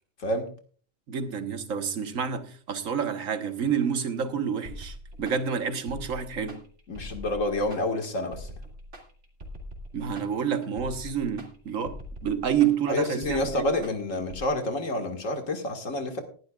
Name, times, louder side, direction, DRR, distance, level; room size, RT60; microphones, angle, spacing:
voice 1, 1.1-6.6 9.9-13.7, right 7 dB, 90° right, 1.6 m, -29 dB
sound 1, 4.6-14.5, equal, 65° right, 2.5 m, -43 dB
voice 2, 6.9-8.5 12.9-16.2, left 1 dB, 80° left, 2.2 m, -28 dB
19.0 x 11.5 x 2.4 m
omnidirectional pair, 1.3 m